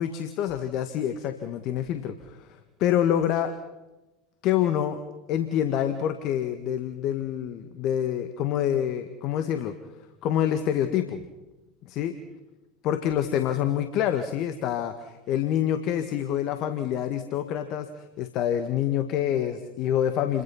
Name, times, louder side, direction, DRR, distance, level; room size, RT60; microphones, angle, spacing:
voice 1, 0.0-2.5 2.8-3.5 4.4-5.0 5.3-9.7 10.2-11.2 11.8-12.1 12.8-20.4, left 10 dB, 50° left, 9 dB, 1.7 m, -27 dB
29.5 x 22.5 x 5.9 m, 1.1 s
figure-of-eight pair, 75°, 0 cm